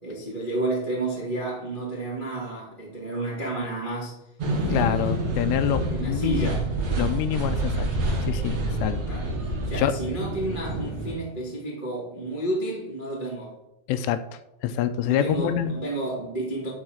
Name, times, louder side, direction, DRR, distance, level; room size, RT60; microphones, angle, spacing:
voice 1, 0.0-4.1 4.6-5.2 5.9-6.7 9.1-9.3 9.6-13.5 15.1-16.7, right 2 dB, 70° right, -5 dB, 0.4 m, -31 dB
sound 1, 4.4-11.2, right 1 dB, 50° right, 1.9 m, -27 dB
voice 2, 4.7-6.6 7.0-7.9 8.3-9.0 9.7-9.9 13.9-14.2 14.6-15.7, left 10 dB, 85° left, 11 dB, 3.0 m, -26 dB
12.0 x 4.1 x 6.4 m, 0.92 s
omnidirectional pair, 5.8 m